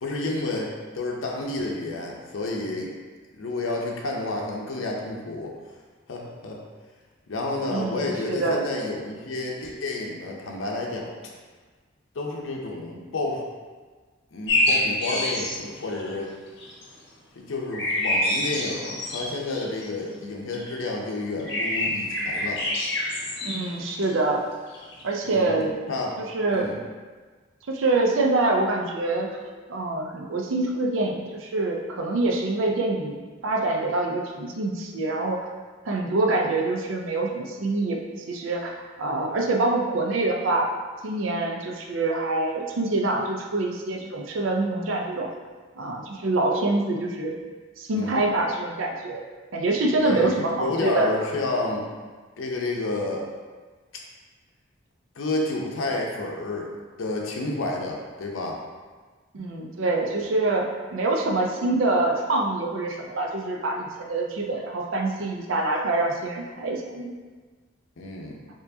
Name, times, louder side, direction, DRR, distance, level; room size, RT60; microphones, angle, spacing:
voice 1, 0.0-2.9 3.4-5.5 6.1-6.6 7.3-11.1 12.1-13.4 14.3-16.3 17.4-22.6 25.2-25.5 25.9-26.2 26.5-26.8 47.9-48.2 50.0-51.9 52.4-53.3 55.2-56.7 57.0-58.6 60.1-60.2 68.0-68.4, left 2 dB, 85° left, -1 dB, 0.6 m, -30 dB
voice 2, 7.7-8.6 23.4-24.5 25.0-25.8 26.2-26.7 27.7-29.3 29.7-35.4 35.9-38.0 38.3-40.7 41.0-45.3 45.8-47.3 47.8-49.2 49.5-51.1 59.3-67.1, right 2 dB, 85° right, 2 dB, 0.5 m, -25 dB
sound 1, 14.5-16.1 16.6-16.9 17.7-19.9 20.5-20.8 21.4-24.3 24.7-25.0, left 1 dB, 60° left, 0.8 m, -26 dB
4.5 x 2.8 x 2.7 m, 1.4 s
head